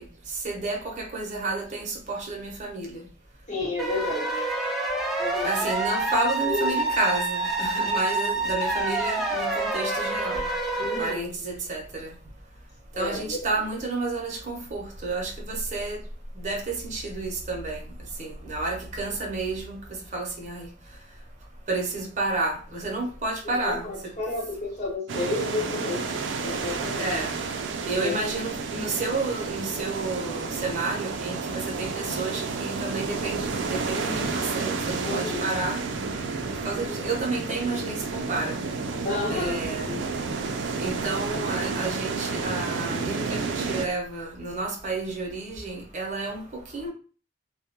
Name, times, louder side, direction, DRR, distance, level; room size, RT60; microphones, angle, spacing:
voice 1, 0.0-3.1 5.4-10.5 11.0-12.2 13.0-16.0 16.3-20.7 21.7-24.1 27.0-27.4 27.8-35.8 36.5-38.6 39.3-40.0 40.8-46.9, right 3 dB, 40° right, 0.7 m, -31 dB
voice 2, 3.5-4.4 5.2-5.5 6.4-6.7 10.8-11.3 12.9-13.4 23.4-27.1 27.9-28.2 35.0-35.5 39.0-40.0, left 2 dB, 40° left, 1.0 m, -31 dB
sound 1, 3.8-11.1, right 2 dB, ahead, 0.4 m, -27 dB
sound 2, 25.1-43.9, right 4 dB, 80° right, 0.4 m, -31 dB
2.2 x 2.1 x 2.8 m
head